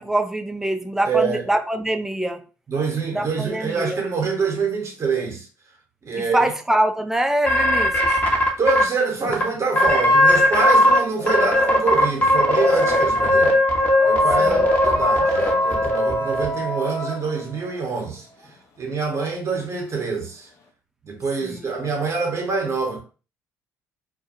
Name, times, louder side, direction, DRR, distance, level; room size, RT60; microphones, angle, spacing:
voice 1, 0.0-2.4 3.1-4.0 6.2-8.2 11.2-11.4 14.4-14.7 21.4-21.7, right 1 dB, 5° right, 0.4 m, -24 dB
voice 2, 1.1-1.4 2.7-5.5 6.0-6.4 8.6-13.6 14.0-18.3 18.8-20.5 21.0-23.0, right 4 dB, 40° right, 0.9 m, -25 dB
sound 1, 7.5-8.8 9.3-9.4 9.8-11.0 11.3-16.5, left 1 dB, 25° left, 0.9 m, -17 dB
sound 2, 9.1-10.4 10.7-18.5, left 1 dB, 45° left, 0.7 m, -31 dB
2.3 x 2.2 x 2.8 m
hypercardioid pair, 65°, 7 cm